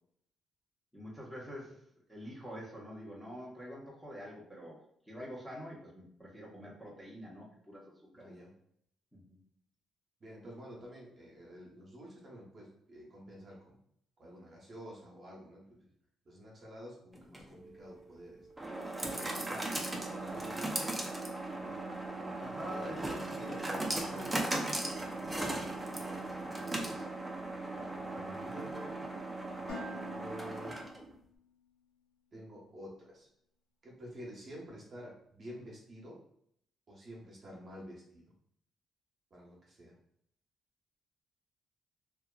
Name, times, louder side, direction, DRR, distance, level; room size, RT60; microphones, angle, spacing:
voice 1, 0.9-1.8 2.1-4.8 5.1-8.3 9.1-9.4 22.4-23.7 24.0-24.5 27.7-28.5, equal, 5° left, -5 dB, 0.9 m, -47 dB
voice 2, 8.1-8.5 10.2-13.8 14.2-15.9 16.3-18.5 19.1-21.0 21.5-24.3 25.9-27.1 28.0-29.1 29.6-30.8 32.3-33.3 33.8-36.2 36.9-38.2 39.3-40.0, equal, 45° right, -3 dB, 0.9 m, -49 dB
sound 1, 17.2-31.1, right 2 dB, 15° right, 0.5 m, -38 dB
Dishes pots and pans, 29.7-31.7, left 3 dB, 80° left, 1.0 m, -49 dB
2.7 x 2.3 x 2.2 m, 0.69 s
cardioid pair, 90°, 0 cm